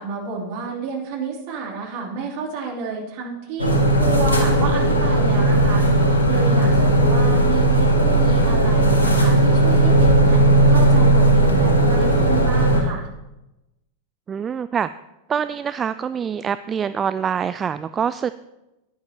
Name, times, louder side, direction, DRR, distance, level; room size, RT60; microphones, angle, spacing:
voice 1, 0.0-13.1, right 5 dB, 45° right, -2 dB, 3.1 m, -30 dB
sound 1, 3.6-12.8, right 1 dB, 75° left, 1.9 m, -16 dB
voice 2, 14.3-14.9 15.3-18.3, right 7 dB, 20° right, 14 dB, 0.3 m, -25 dB
15.5 x 10.5 x 3.0 m, 0.94 s
figure-of-eight pair, 90°, 0 cm